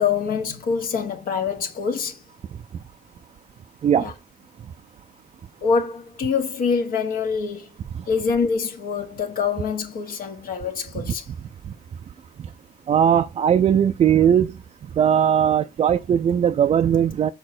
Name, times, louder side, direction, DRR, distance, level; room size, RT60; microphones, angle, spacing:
voice 1, 0.0-2.2 4.0-4.1 5.6-7.7 8.1-11.2, left 5 dB, 60° left, 1.7 m, -25 dB
voice 2, 12.9-14.5 15.0-17.3, right 9 dB, 35° right, 0.4 m, -18 dB
6.6 x 4.7 x 6.2 m
cardioid pair, 110°, 17 cm